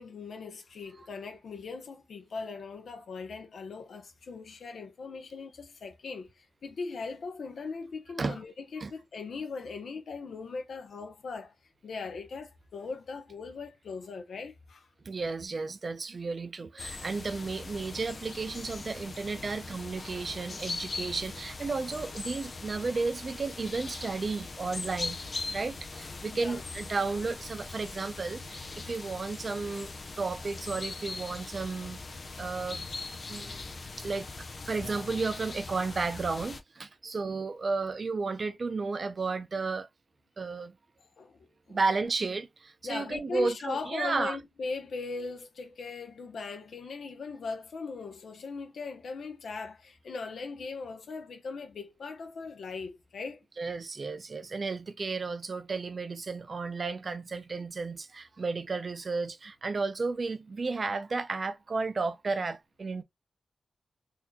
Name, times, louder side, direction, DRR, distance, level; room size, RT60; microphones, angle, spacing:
voice 1, 0.0-11.5 11.8-14.9 26.3-26.6 41.2-41.8 42.8-53.4, left 4 dB, 85° left, 0.9 m, -39 dB
voice 2, 15.0-25.2 25.5-29.9 30.2-32.0 32.4-32.9 33.3-39.9 40.4-40.7 41.7-44.4 53.6-63.0, right 4 dB, 45° right, 0.5 m, -33 dB
sound 1, 16.8-36.6, left 3 dB, 45° left, 0.5 m, -41 dB
4.2 x 2.8 x 2.3 m
wide cardioid pair, 120°, 0 cm